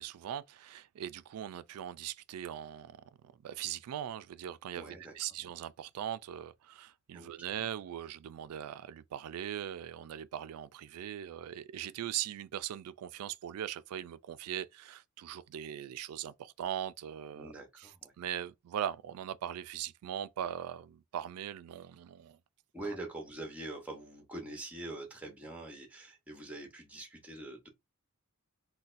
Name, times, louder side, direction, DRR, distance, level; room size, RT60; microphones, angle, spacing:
voice 1, 0.0-3.0 3.4-17.9 18.2-22.4, right 10 dB, 80° right, 0.3 m, -40 dB
voice 2, 4.7-5.1 7.1-7.3 17.3-18.1 22.7-27.7, right 2 dB, 5° right, 0.7 m, -44 dB
4.0 x 2.2 x 2.4 m
head